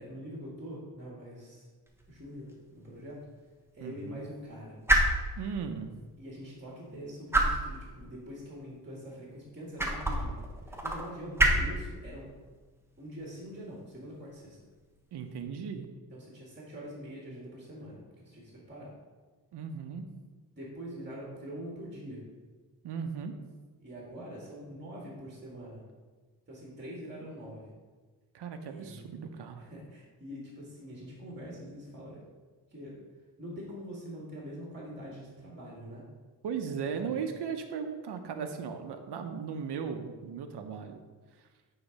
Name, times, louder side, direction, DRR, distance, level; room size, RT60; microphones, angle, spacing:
voice 1, 0.0-1.7 2.1-3.2 3.7-4.8 6.2-10.4 10.6-12.3 13.0-14.6 16.1-18.9 20.5-22.2 23.8-25.8 26.5-27.7 28.7-29.0 29.6-32.2 32.7-33.0 33.4-36.0 36.8-37.3, equal, 25° right, -4 dB, 2.3 m, -44 dB
sound 1, 1.9-15.4, right 1 dB, 5° right, 1.2 m, -33 dB
voice 2, 3.8-4.2 5.4-5.9 15.1-15.9 19.5-20.1 22.8-23.3 27.2-27.3 28.3-29.7 36.4-41.0, right 6 dB, 90° right, 6 dB, 0.8 m, -37 dB
9.0 x 4.0 x 5.3 m, 1.4 s
cardioid pair, 95°, 39 cm